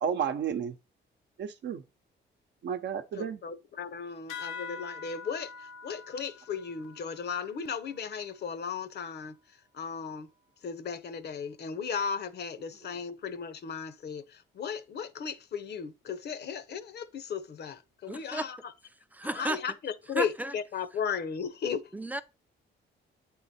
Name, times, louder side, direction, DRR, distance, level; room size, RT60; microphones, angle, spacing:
voice 1, 0.0-0.7 1.4-1.8 2.6-3.4, right 7 dB, 65° right, 0.8 m, -32 dB
voice 2, 3.1-9.4 9.7-10.3 10.6-18.7 19.2-21.9, left 6 dB, 55° left, 0.8 m, -36 dB
sound 1, 4.3-9.2, left 5 dB, 85° left, 1.0 m, -45 dB
voice 3, 18.1-18.5 19.1-19.6 20.2-20.5 21.9-22.2, right 1 dB, 10° right, 0.5 m, -33 dB
8.7 x 3.8 x 4.2 m
cardioid pair, 90°, 20 cm